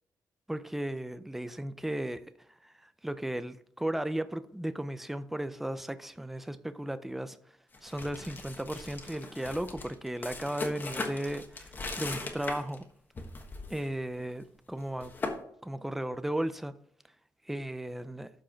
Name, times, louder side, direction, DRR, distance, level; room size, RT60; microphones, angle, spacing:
voice 1, 0.5-7.4 7.8-12.8 13.7-15.1 15.6-16.8 17.5-18.3, right 1 dB, 5° right, 0.4 m, -35 dB
sound 1, 7.7-12.8 13.2-13.8 14.1-14.3 14.8-15.4, left 3 dB, 30° left, 1.4 m, -39 dB
12.0 x 4.8 x 4.5 m
wide cardioid pair, 160°, 7 cm